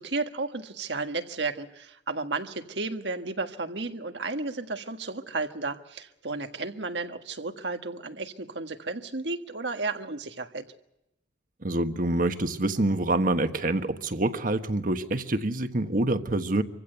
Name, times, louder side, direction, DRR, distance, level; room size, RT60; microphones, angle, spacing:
voice 1, 0.0-10.7, right 3 dB, 85° right, 7 dB, 1.6 m, -33 dB
voice 2, 11.6-16.6, right 2 dB, 50° right, 9 dB, 1.3 m, -26 dB
26.0 x 16.0 x 8.1 m, 0.90 s
head